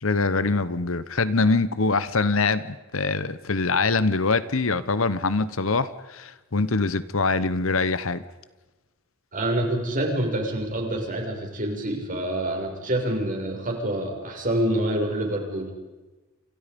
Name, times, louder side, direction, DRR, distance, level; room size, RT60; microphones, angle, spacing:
voice 1, 0.0-8.2, left 3 dB, 65° left, 15 dB, 1.1 m, -24 dB
voice 2, 9.3-15.7, right 1 dB, 40° right, 2 dB, 6.5 m, -27 dB
29.0 x 28.0 x 5.4 m, 1.1 s
head